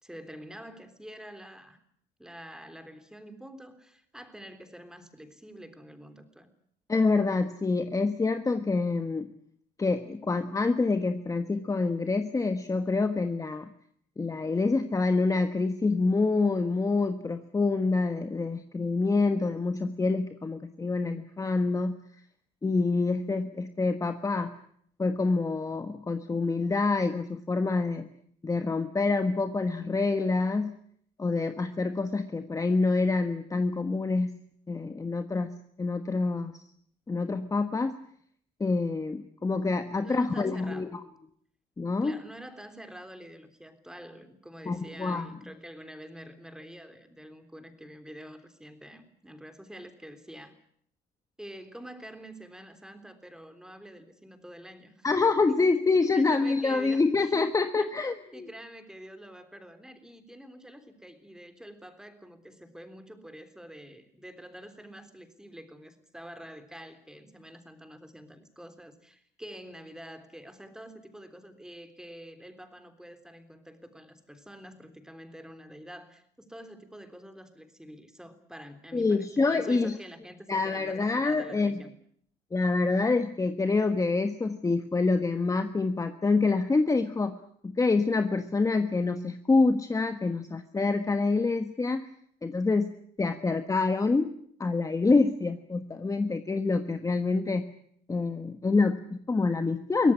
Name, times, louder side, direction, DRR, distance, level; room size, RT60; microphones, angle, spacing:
voice 1, 0.0-1.8 2.2-6.5 40.0-40.9 42.0-50.5 51.4-55.1 55.5-55.7 56.0-57.3 57.7-57.9 58.3-81.9, equal, 5° right, 8 dB, 3.5 m, -47 dB
voice 2, 6.9-9.3 9.8-13.7 14.2-21.9 22.6-24.5 25.0-28.1 28.4-30.8 31.2-34.3 34.7-36.5 37.1-38.0 38.6-40.9 41.8-42.2 44.7-45.3 55.0-58.5 78.9-80.0 80.5-81.8 82.5-87.4 87.6-92.1 92.4-94.3 94.6-97.7 98.1-100.1, left 3 dB, 20° left, 8 dB, 1.3 m, -26 dB
23.0 x 18.0 x 9.8 m, 0.66 s
cardioid pair, 110°, 17 cm